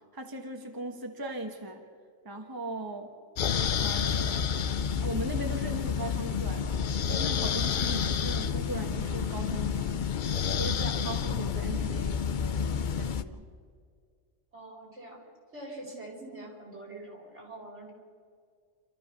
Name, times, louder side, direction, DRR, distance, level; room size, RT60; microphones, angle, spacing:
voice 1, 0.1-1.8 2.2-3.1 3.8-4.5 5.0-10.0 10.6-13.5 15.9-16.0, right 1 dB, 20° right, 3 dB, 1.4 m, -39 dB
sound 1, 3.4-13.2, left 7 dB, 50° left, 0.7 m, -29 dB
voice 2, 14.5-15.2 15.5-17.9, right 1 dB, 70° right, -2 dB, 4.9 m, -44 dB
29.0 x 13.5 x 6.8 m, 2.1 s
omnidirectional pair, 1.2 m